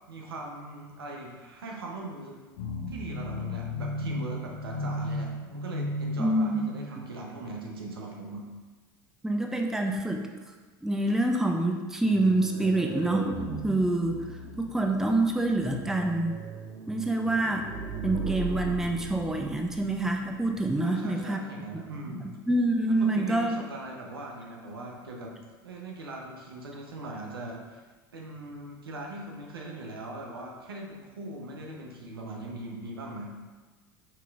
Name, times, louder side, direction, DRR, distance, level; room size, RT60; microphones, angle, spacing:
voice 1, 0.1-2.4 2.9-8.5 20.8-22.3 22.8-25.4 25.6-27.8 28.1-33.3, right 2 dB, 90° right, 0 dB, 0.7 m, -40 dB
sound 1, 2.6-7.2, left 1 dB, 75° left, 0.8 m, -34 dB
voice 2, 6.2-6.7 9.2-10.2 10.8-13.3 13.6-16.4 16.9-17.7 18.0-21.4 22.2-23.6, right 2 dB, 5° right, 3 dB, 0.4 m, -26 dB
sound 2, 12.0-20.8, right 3 dB, 45° right, 0.7 m, -38 dB
5.8 x 3.0 x 2.4 m, 1.3 s
hypercardioid pair, 85°, 12 cm